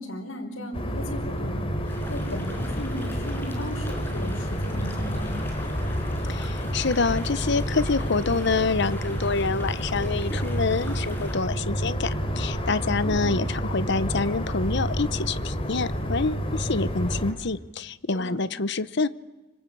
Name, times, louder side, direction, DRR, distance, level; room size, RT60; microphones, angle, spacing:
voice 1, 0.0-5.4 13.0-13.3 18.1-18.4, equal, 85° left, 1 dB, 4.9 m, -36 dB
sound 1, 0.7-17.3, equal, 30° left, 3.3 m, -29 dB
sound 2, 1.9-11.4, equal, 10° left, 5.4 m, -43 dB
voice 2, 6.3-19.1, left 4 dB, 60° left, 15 dB, 0.9 m, -27 dB
26.5 x 25.5 x 8.6 m, 1.1 s
head